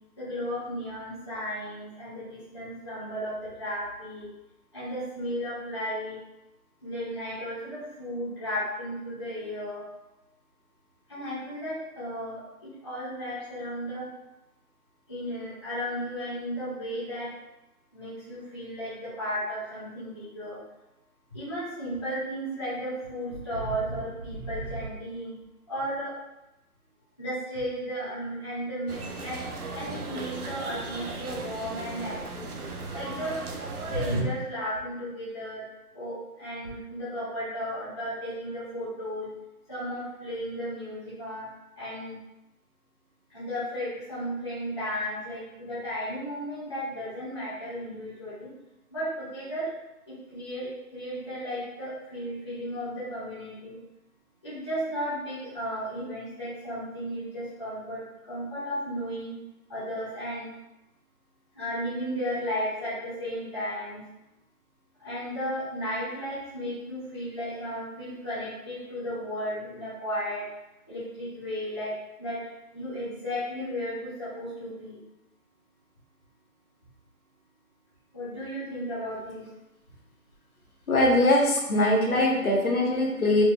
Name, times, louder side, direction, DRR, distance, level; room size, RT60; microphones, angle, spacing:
voice 1, 0.2-4.3 4.7-6.2 6.8-9.8 11.1-14.1 15.1-17.3 17.9-20.6 21.3-25.3 25.7-26.1 27.2-32.5 32.9-33.4 33.9-35.6 35.9-39.3 39.7-41.5 41.8-42.2 43.3-48.5 48.9-49.7 50.1-53.8 54.4-58.0 58.3-59.3 59.7-60.5 61.5-64.0 65.0-70.4 70.9-71.9 72.2-72.4 72.7-75.0 78.1-79.4, equal, 20° left, -13 dB, 0.8 m, -34 dB
sound 1, 28.9-34.2, right 3 dB, 75° right, 0.7 m, -37 dB
voice 2, 80.9-83.4, left 1 dB, 70° left, -1 dB, 1.0 m, -22 dB
4.4 x 2.3 x 2.2 m, 0.93 s
figure-of-eight pair, 165°, 45 cm